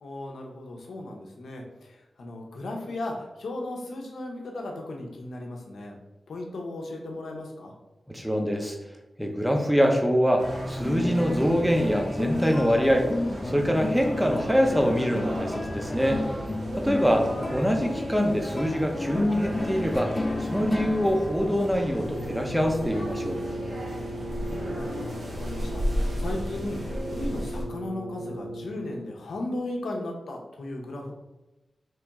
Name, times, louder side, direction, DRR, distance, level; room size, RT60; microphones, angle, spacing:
voice 1, 0.0-6.0 6.3-7.7 17.2-17.5 24.5-31.1, left 1 dB, 90° left, 1 dB, 0.6 m, -36 dB
voice 2, 8.1-8.8 9.2-13.1 13.4-16.2 16.8-20.1 20.5-23.4, equal, 5° right, 2 dB, 0.7 m, -24 dB
sound 1, 10.4-27.6, equal, 80° right, 1.1 m, -34 dB
sound 2, 10.5-23.2, left 2 dB, 35° left, 0.4 m, -33 dB
Brass instrument, 21.9-29.1, right 1 dB, 55° right, 1.4 m, -37 dB
3.0 x 2.9 x 3.5 m, 1.0 s
cardioid pair, 45°, 0 cm